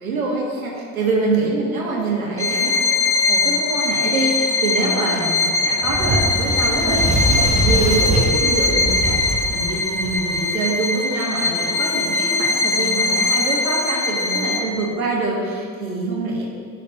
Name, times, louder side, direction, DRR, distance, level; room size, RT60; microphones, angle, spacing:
voice 1, 0.0-16.5, right 2 dB, 80° right, -4 dB, 2.0 m, -25 dB
Bowed string instrument, 2.4-14.9, left 3 dB, 5° left, 0.4 m, -21 dB
Fire, 5.8-10.4, right 2 dB, 15° right, 1.0 m, -23 dB
11.0 x 4.2 x 5.5 m, 2.2 s
figure-of-eight pair, 70°, 41 cm